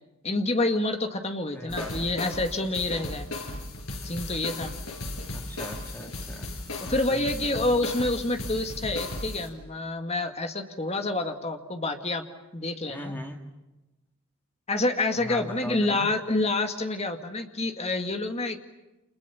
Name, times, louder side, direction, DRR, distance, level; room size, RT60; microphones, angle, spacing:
voice 1, 0.2-3.3 4.0-4.7 6.8-12.3 12.5-13.1 14.7-18.6, left 2 dB, 30° left, 6 dB, 2.1 m, -28 dB
voice 2, 1.6-2.1 5.3-6.5 6.9-7.3 12.9-13.4 15.2-16.1, equal, 10° left, 4 dB, 2.0 m, -39 dB
sound 1, 1.7-9.5, left 2 dB, 85° left, 6.4 m, -36 dB
30.0 x 28.0 x 7.1 m, 1.0 s
head